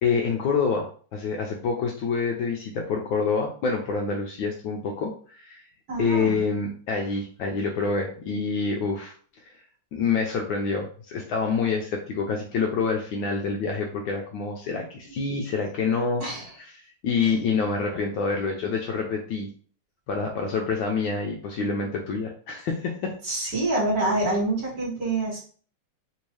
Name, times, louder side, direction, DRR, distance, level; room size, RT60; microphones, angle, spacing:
voice 1, 0.0-5.6 6.0-9.1 9.9-16.2 16.6-19.5 20.1-23.1, left 4 dB, 75° left, 1 dB, 1.2 m, -27 dB
voice 2, 5.9-6.4 16.2-16.5 17.2-17.3 23.2-25.4, right 2 dB, 45° right, -4 dB, 1.8 m, -26 dB
3.6 x 2.7 x 3.1 m, 0.42 s
omnidirectional pair, 2.4 m